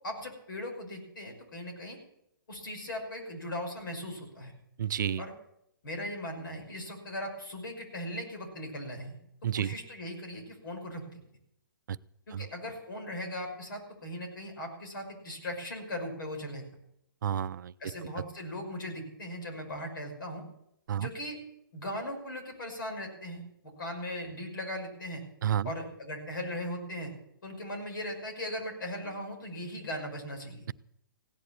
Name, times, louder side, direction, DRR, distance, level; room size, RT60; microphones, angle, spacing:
voice 1, 0.0-2.0 2.5-4.5 5.2-5.3 5.8-9.2 9.5-11.2 12.3-16.6 17.8-20.4 21.0-21.4 21.7-23.4 23.8-25.2 25.6-27.1 27.4-30.7, left 1 dB, 65° left, 3 dB, 5.8 m, -38 dB
voice 2, 4.8-5.2 9.4-9.7 11.9-12.0 12.3-12.5 17.2-17.7 20.9-21.1 25.4-25.7, right 9 dB, 60° right, 16 dB, 0.5 m, -30 dB
16.5 x 10.5 x 7.4 m, 0.76 s
hypercardioid pair, 135°, 12 cm